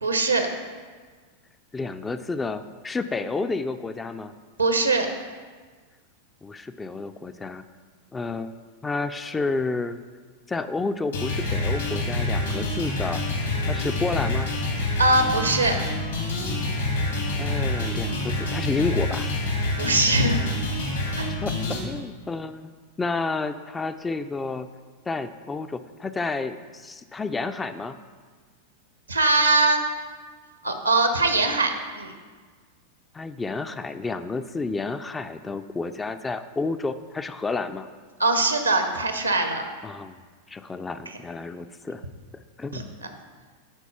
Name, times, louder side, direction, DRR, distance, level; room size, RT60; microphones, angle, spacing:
voice 1, 0.0-0.5 4.6-5.1 15.0-15.8 19.8-20.5 21.2-21.3 29.1-29.8 30.6-32.1 38.2-39.6 42.7-42.8, right 2 dB, 80° right, 6 dB, 0.8 m, -21 dB
voice 2, 1.7-4.3 6.4-7.6 8.1-8.5 8.8-10.0 10.5-13.2 13.7-14.6 17.4-19.3 21.3-22.7 23.0-24.7 25.1-28.0 33.1-37.9 39.8-40.2 40.5-42.0 42.6-42.9, left 3 dB, 15° left, 10 dB, 0.3 m, -30 dB
sound 1, 11.1-21.8, left 2 dB, 65° left, 1.7 m, -27 dB
8.9 x 4.1 x 5.6 m, 1.5 s
figure-of-eight pair, 90°, 0 cm